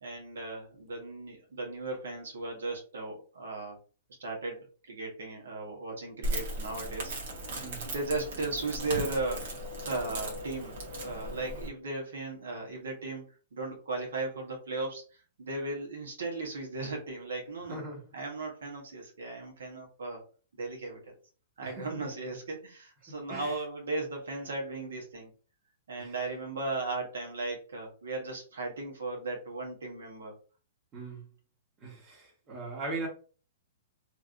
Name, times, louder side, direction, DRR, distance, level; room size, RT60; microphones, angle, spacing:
voice 1, 0.0-3.8 4.2-7.1 7.8-10.7 11.0-13.2 13.5-15.0 15.4-17.8 18.1-20.2 20.6-21.0 21.6-25.3 25.9-30.3, right 3 dB, 85° right, 1.3 m, -36 dB
Crackle, 6.2-11.7, right 1 dB, 65° right, 1.3 m, -37 dB
voice 2, 17.7-18.0 21.6-22.1 23.3-23.6 26.0-26.1 30.9-31.2 31.8-33.1, right 3 dB, 25° right, 1.2 m, -39 dB
3.2 x 2.7 x 2.5 m
hypercardioid pair, 140°, 0 cm